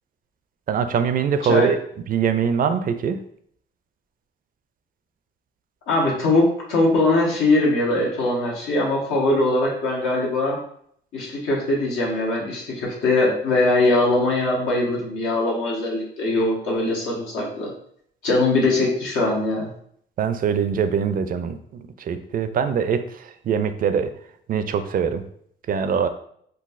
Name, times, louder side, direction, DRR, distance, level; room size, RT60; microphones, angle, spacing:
voice 1, 0.7-1.8 2.1-3.2 20.2-24.1 24.5-25.2 25.7-26.1, right 7 dB, 45° right, 10 dB, 0.4 m, -23 dB
voice 2, 5.9-6.4 6.7-10.6 11.1-17.7 18.2-19.7, left 2 dB, 85° left, -3 dB, 1.0 m, -21 dB
3.9 x 2.3 x 2.5 m, 0.66 s
cardioid pair, 90°, 20 cm